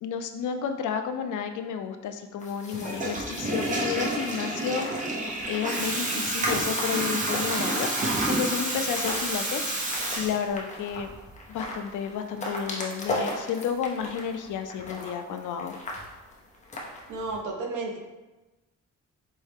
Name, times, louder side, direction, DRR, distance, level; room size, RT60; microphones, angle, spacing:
voice 1, 0.0-5.0 5.5-7.9 8.3-9.6 10.2-11.1 11.5-15.7, left 7 dB, 70° left, 7 dB, 0.5 m, -31 dB
sound 1, 2.4-17.4, left 1 dB, 20° left, 0.6 m, -39 dB
Water tap faucet / Toilet flush, 2.7-10.8, right 1 dB, 25° right, 0.6 m, -29 dB
voice 2, 17.1-18.0, right 3 dB, 70° right, 2 dB, 0.8 m, -32 dB
4.5 x 3.1 x 3.3 m, 1.1 s
wide cardioid pair, 175°, 32 cm